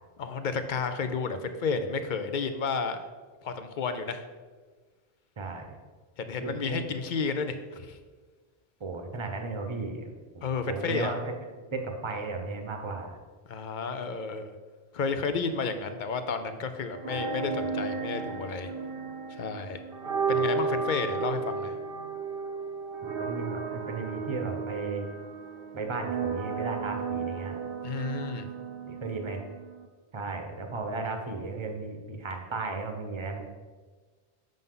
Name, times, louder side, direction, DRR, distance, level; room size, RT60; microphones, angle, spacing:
voice 1, 0.2-3.1 3.4-4.2 6.2-8.0 10.4-11.1 13.5-14.5 14.9-18.7 19.3-19.8 20.3-21.7 27.8-28.5, left 5 dB, 55° left, 9 dB, 0.7 m, -32 dB
voice 2, 5.4-5.8 6.4-6.9 8.8-11.3 11.7-13.2 20.3-20.5 23.2-25.0 25.7-27.6 28.9-29.4 30.1-33.4, right 3 dB, 30° right, 4 dB, 0.8 m, -35 dB
sound 1, 16.9-29.9, right 5 dB, 60° right, 0.9 m, -33 dB
7.6 x 5.4 x 3.8 m, 1.4 s
omnidirectional pair, 1.1 m